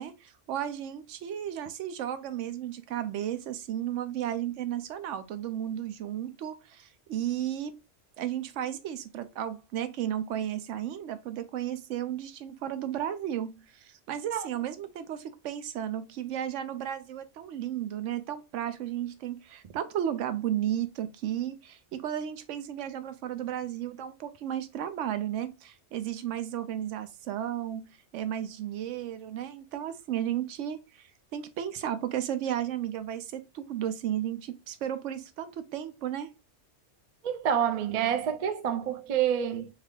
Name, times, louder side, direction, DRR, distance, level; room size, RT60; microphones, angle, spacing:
voice 1, 0.0-7.7 8.2-36.3, right 10 dB, 85° right, 0.9 m, -34 dB
voice 2, 37.2-39.7, right 9 dB, 60° right, 0.4 m, -28 dB
3.4 x 2.4 x 3.5 m
omnidirectional pair, 1.2 m